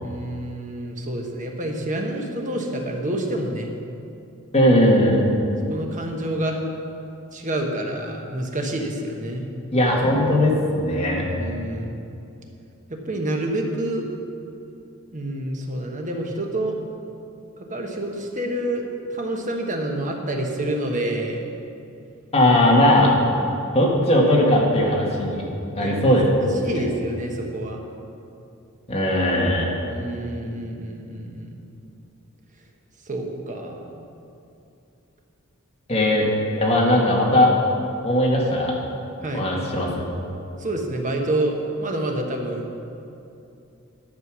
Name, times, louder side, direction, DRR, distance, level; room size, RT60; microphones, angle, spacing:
voice 1, 0.0-3.7 5.7-6.6 7.3-9.5 11.3-12.0 13.1-14.1 15.1-16.8 17.7-18.8 19.1-21.5 25.8-26.2 26.6-27.8 29.8-31.6 33.1-34.0 39.2-39.4 40.6-42.7, right 1 dB, 35° right, 1 dB, 1.2 m, -28 dB
voice 2, 4.5-5.2 9.7-11.2 22.3-23.1 23.7-25.4 25.8-26.3 26.7-26.9 28.9-29.7 35.9-36.3 36.6-37.5 38.0-38.7 39.3-39.9, left 1 dB, 30° left, -2 dB, 1.8 m, -18 dB
11.0 x 6.7 x 6.3 m, 2.7 s
head